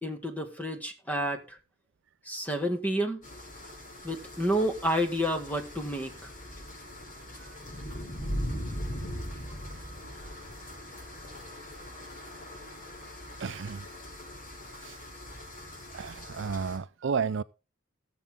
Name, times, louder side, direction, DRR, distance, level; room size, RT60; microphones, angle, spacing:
voice 1, 0.0-1.6 2.2-3.2 4.0-6.3, equal, 10° left, 1.9 m, -30 dB
sound 1, 3.2-16.8, equal, 40° left, 4.9 m, -40 dB
voice 2, 13.4-13.9 14.8-15.0 15.9-17.4, right 5 dB, 65° right, 0.5 m, -32 dB
18.5 x 7.0 x 3.7 m
head